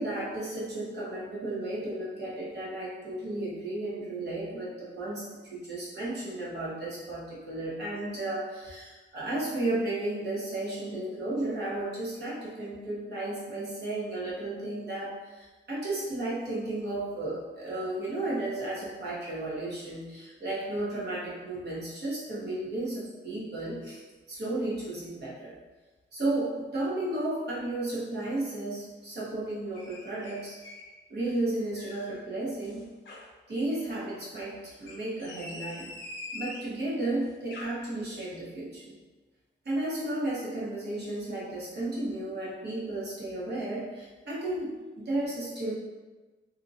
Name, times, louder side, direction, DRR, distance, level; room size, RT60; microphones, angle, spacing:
voice 1, 0.0-25.5 26.1-30.6 31.1-32.9 33.5-35.9 36.3-38.9 39.6-45.7, right 2 dB, 55° right, -8 dB, 1.2 m, -33 dB
sound 1, 29.7-30.9 31.3-32.2 32.6-33.3 34.7-36.7 37.3-37.6, left 2 dB, 65° left, 0.7 m, -44 dB
2.8 x 2.6 x 2.6 m, 1.2 s
wide cardioid pair, 120°, 20 cm